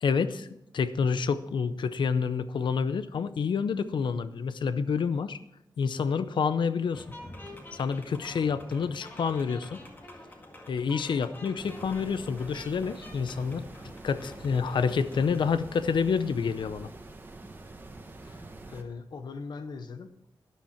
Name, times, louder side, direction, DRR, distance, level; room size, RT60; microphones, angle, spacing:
voice 1, 0.0-0.5 0.7-5.4 5.8-7.0 7.7-9.8 10.7-13.7 14.0-16.9, left 6 dB, 85° left, 13 dB, 0.7 m, -28 dB
sound 1, 6.9-15.5, left 1 dB, 25° left, 1.9 m, -47 dB
sound 2, 11.6-18.8, right 2 dB, 25° right, 1.1 m, -46 dB
voice 2, 18.2-20.3, left 4 dB, 65° left, 10 dB, 1.0 m, -41 dB
13.0 x 10.5 x 4.4 m, 0.80 s
wide cardioid pair, 165°, 8 cm